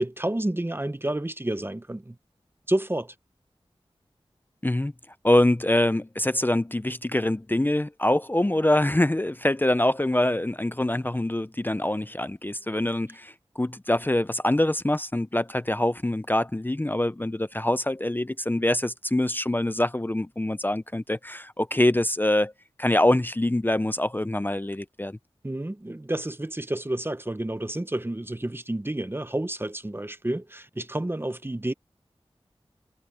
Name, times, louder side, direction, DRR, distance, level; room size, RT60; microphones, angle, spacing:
voice 1, 0.0-2.2 2.7-3.1 25.4-31.7, right 1 dB, 20° right, 0.8 m, -30 dB
voice 2, 5.2-22.5 22.8-25.2, left 1 dB, 20° left, 0.6 m, -24 dB
wide cardioid pair, 50°, 10 cm